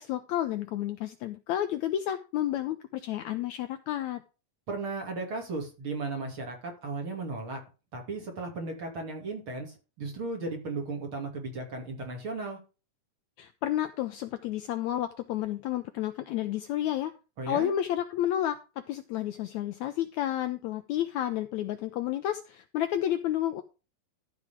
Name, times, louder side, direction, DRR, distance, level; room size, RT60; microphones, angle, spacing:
voice 1, 0.0-4.2 13.4-17.1 17.5-23.6, left 12 dB, 75° left, 9 dB, 1.7 m, -31 dB
voice 2, 4.7-7.6 7.9-12.6 17.4-17.7, right 3 dB, 40° right, 2 dB, 3.4 m, -35 dB
13.0 x 4.9 x 5.8 m, 0.31 s
omnidirectional pair, 3.9 m